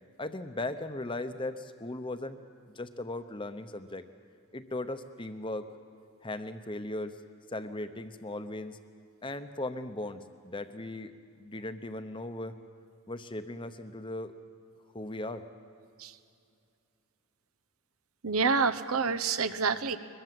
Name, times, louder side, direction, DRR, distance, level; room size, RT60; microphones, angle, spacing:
voice 1, 0.2-2.4 2.7-4.1 4.5-5.7 6.2-7.2 7.5-8.8 9.2-12.6 13.1-14.3 14.9-15.5, left 2 dB, 20° left, 10 dB, 0.9 m, -38 dB
voice 2, 18.2-20.0, right 5 dB, 80° right, 10 dB, 1.0 m, -27 dB
22.5 x 21.5 x 7.7 m, 2.4 s
head